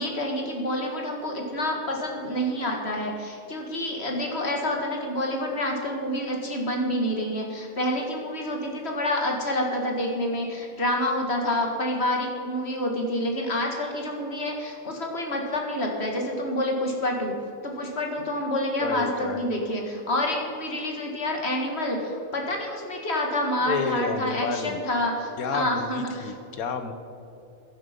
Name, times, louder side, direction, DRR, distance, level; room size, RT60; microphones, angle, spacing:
voice 1, 0.0-17.4 17.6-26.3, left 1 dB, 45° left, 1 dB, 2.2 m, -28 dB
voice 2, 18.8-19.4 23.6-24.8 25.4-26.9, left 5 dB, 75° left, 8 dB, 1.5 m, -30 dB
16.0 x 10.5 x 5.3 m, 2.8 s
omnidirectional pair, 1.5 m